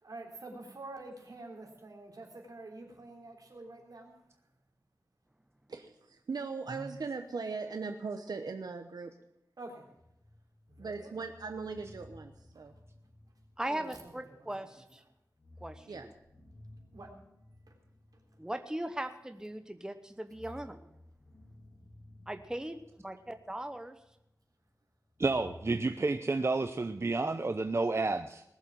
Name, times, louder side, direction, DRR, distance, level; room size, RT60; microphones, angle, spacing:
voice 1, 0.0-4.2 9.6-9.9 10.7-11.2 12.5-12.6 13.7-14.7 16.9-17.1 17.7-17.8, right 2 dB, 75° right, 1 dB, 3.7 m, -48 dB
voice 2, 5.7-9.1 10.8-12.7 15.9-16.1, right 4 dB, 90° right, 5 dB, 1.0 m, -39 dB
sound 1, 9.9-14.6 14.9-15.0 15.3-19.6 20.1-24.4 25.1-25.8, left 1 dB, 60° left, 2.9 m, -56 dB
voice 3, 13.6-15.0 15.6-16.1 18.4-20.8 22.3-24.0, right 1 dB, 10° right, 8 dB, 1.0 m, -39 dB
voice 4, 25.2-28.4, right 3 dB, 40° right, 8 dB, 0.7 m, -30 dB
20.0 x 7.3 x 7.5 m, 0.85 s
wide cardioid pair, 80°, 7 cm